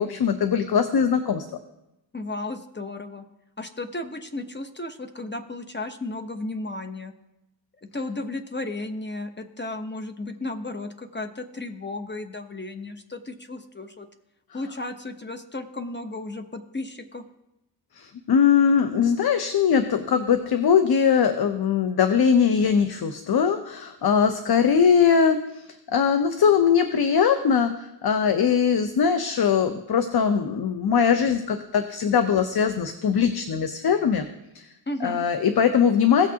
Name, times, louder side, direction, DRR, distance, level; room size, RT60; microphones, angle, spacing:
voice 1, 0.0-1.4 18.0-25.7 25.9-34.2 34.5-34.7 35.0-36.3, left 7 dB, 55° left, 8 dB, 0.8 m, -21 dB
voice 2, 2.1-3.3 3.6-7.1 7.8-14.1 14.5-17.2 34.9-35.2, left 2 dB, 25° left, 7 dB, 0.9 m, -34 dB
17.0 x 6.2 x 2.8 m, 0.92 s
cardioid pair, 55°, 46 cm